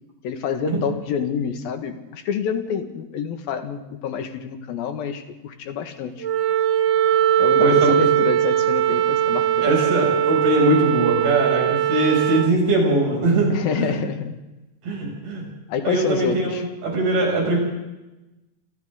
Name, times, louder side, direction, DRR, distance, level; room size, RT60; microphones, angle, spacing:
voice 1, 0.2-6.3 7.4-9.7 13.5-14.4 15.7-16.6, left 7 dB, 75° left, 6 dB, 3.5 m, -27 dB
Wind instrument woodwind instrument, 6.2-12.5, right 11 dB, 60° right, 1.9 m, -20 dB
voice 2, 7.6-7.9 9.6-14.0 14.8-15.5 15.8-16.6 16.8-17.6, right 1 dB, 85° right, 0 dB, 9.1 m, -21 dB
29.5 x 25.5 x 3.9 m, 1.0 s
omnidirectional pair, 4.3 m